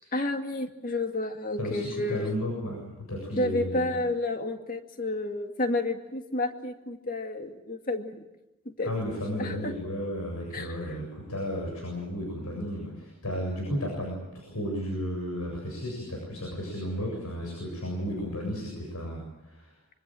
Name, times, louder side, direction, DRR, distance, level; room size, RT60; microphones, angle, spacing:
voice 1, 0.1-2.3 3.4-8.2 8.7-8.9 9.4-9.7 10.5-10.7, left 2 dB, 40° left, 5 dB, 2.2 m, -30 dB
voice 2, 1.6-3.9 8.8-19.7, equal, 90° left, 0 dB, 7.6 m, -33 dB
25.0 x 25.0 x 7.8 m, 0.93 s
head